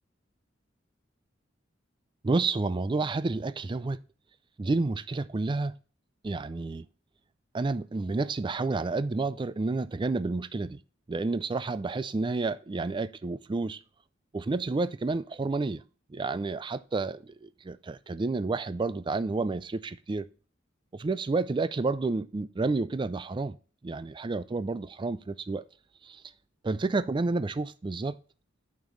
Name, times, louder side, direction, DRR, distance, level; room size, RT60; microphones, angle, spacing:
voice 1, 2.2-4.0 4.6-5.8 6.2-6.9 7.5-10.8 11.1-13.8 14.3-15.8 16.1-20.3 20.9-23.6 23.8-25.6 26.0-26.2 26.6-28.2, right 3 dB, 25° right, 0.4 m, -30 dB
9.1 x 5.3 x 3.1 m
head